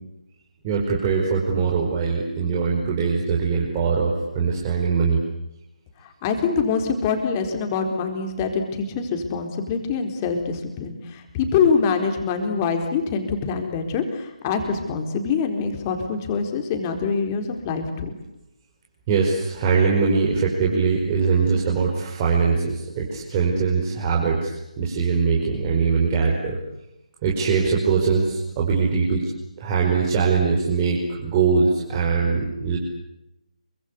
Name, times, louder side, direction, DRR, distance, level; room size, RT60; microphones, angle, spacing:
voice 1, 0.6-5.2 19.1-26.6 27.2-29.3 29.6-32.8, right 5 dB, 20° right, -3 dB, 5.2 m, -22 dB
voice 2, 6.2-18.1, left 5 dB, 20° left, 5 dB, 4.3 m, -24 dB
28.0 x 24.5 x 8.4 m, 0.88 s
figure-of-eight pair, 150°, 4 cm